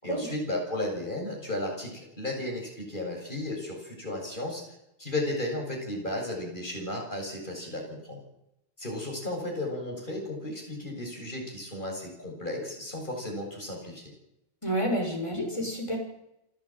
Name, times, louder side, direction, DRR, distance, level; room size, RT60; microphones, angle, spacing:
voice 1, 0.0-4.6 5.0-8.2 8.8-14.0, left 1 dB, 45° left, 0 dB, 7.6 m, -34 dB
voice 2, 14.6-16.0, equal, 25° left, 1 dB, 6.0 m, -29 dB
29.5 x 12.5 x 9.1 m, 0.86 s
omnidirectional pair, 1.2 m